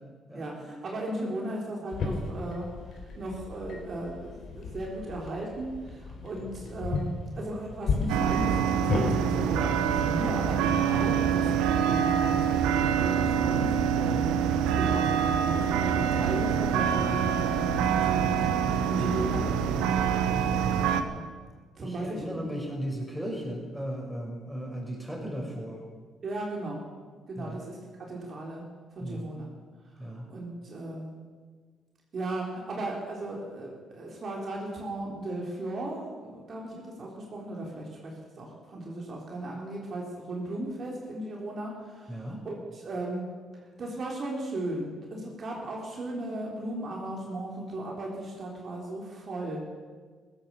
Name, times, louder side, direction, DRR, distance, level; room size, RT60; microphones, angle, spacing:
voice 1, 0.3-2.7 3.2-19.8 20.9-21.2 21.8-22.2 26.2-26.8 27.3-28.6 29.0-29.5 30.1-31.2 32.1-43.3 43.8-49.6, right 1 dB, 50° right, -2 dB, 3.9 m, -36 dB
sound 1, 1.9-9.1, left 4 dB, 60° left, 4.1 m, -34 dB
sound 2, 8.1-21.0, right 8 dB, 80° right, 1.0 m, -25 dB
voice 2, 21.8-25.9 27.4-27.6 29.0-29.3 30.0-30.3 42.1-42.4, equal, 5° right, 0 dB, 5.8 m, -36 dB
15.5 x 12.0 x 7.1 m, 1.5 s
hypercardioid pair, 55°, 0 cm